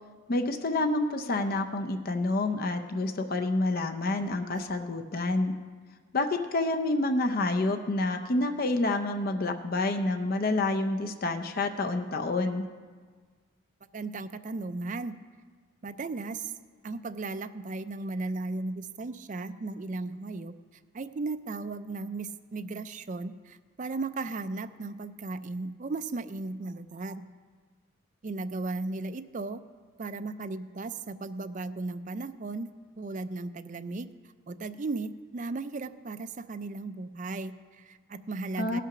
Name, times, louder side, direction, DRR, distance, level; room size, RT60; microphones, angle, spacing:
voice 1, 0.3-5.5 6.1-12.7 38.6-38.8, left 2 dB, 45° left, 6 dB, 0.5 m, -28 dB
voice 2, 13.9-15.1 15.8-16.5 16.8-20.5 20.9-27.3 28.2-29.6 30.0-32.7 33.0-34.1 34.5-38.8, right 3 dB, 35° right, 11 dB, 0.4 m, -36 dB
17.0 x 5.8 x 5.9 m, 1.5 s
head